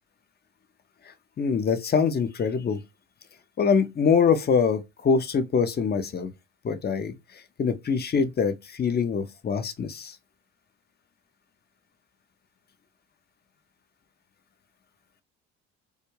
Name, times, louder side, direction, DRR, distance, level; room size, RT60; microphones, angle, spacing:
voice 1, 1.1-2.8 3.6-6.3 6.6-7.1 7.6-10.2, left 6 dB, 25° left, 0.5 m, -24 dB
2.3 x 2.1 x 3.0 m
hypercardioid pair, 60°, 37 cm